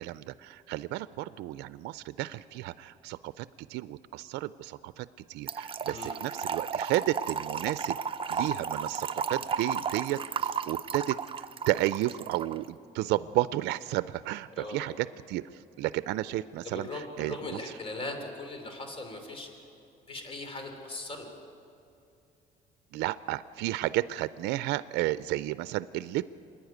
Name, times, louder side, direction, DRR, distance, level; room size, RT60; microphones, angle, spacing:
voice 1, 0.0-8.0 8.3-17.6 22.9-26.2, right 16 dB, 85° right, 15 dB, 0.4 m, -32 dB
Trickle dribble / Fill (with liquid), 5.5-12.6, right 6 dB, 30° right, 0.6 m, -33 dB
voice 2, 5.9-6.2 14.6-14.9 16.6-19.5 20.1-21.3, left 2 dB, 35° left, 4 dB, 3.6 m, -39 dB
27.5 x 10.5 x 9.3 m, 2.7 s
cardioid pair, 110°, 17 cm